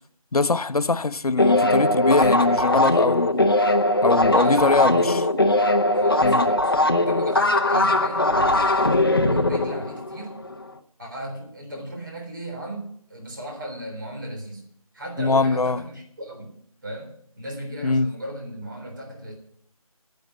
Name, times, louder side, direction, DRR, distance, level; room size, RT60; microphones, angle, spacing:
voice 1, 0.3-3.5 4.0-5.0 6.2-6.5 15.2-15.8 17.8-18.1, left 3 dB, 80° left, 0.6 m, -21 dB
sound 1, 1.4-10.5, left 1 dB, 40° left, 0.8 m, -20 dB
voice 2, 4.3-5.2 5.9-6.7 7.1-9.0 9.3-10.4 11.0-14.6 14.9-16.6 16.8-19.3, right 1 dB, 35° right, 3.6 m, -35 dB
10.5 x 10.0 x 8.2 m
figure-of-eight pair, 175°, 19 cm